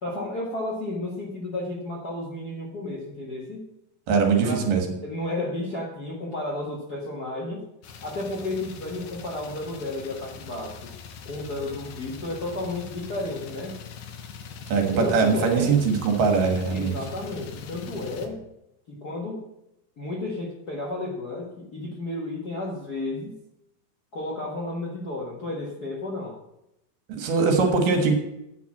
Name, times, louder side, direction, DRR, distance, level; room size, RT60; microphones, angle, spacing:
voice 1, 0.0-3.7 4.4-4.7 5.0-7.6 8.0-10.9 11.2-13.7 15.0-15.8 16.7-18.4 18.9-19.4 20.0-23.4 24.1-26.3, left 2 dB, 45° left, -3 dB, 1.2 m, -32 dB
voice 2, 4.1-4.9 14.7-16.9 27.2-28.1, right 5 dB, 75° right, 5 dB, 3.1 m, -21 dB
sound 1, 7.8-18.3, left 5 dB, 65° left, 2.1 m, -41 dB
9.1 x 6.0 x 7.2 m, 0.85 s
omnidirectional pair, 3.9 m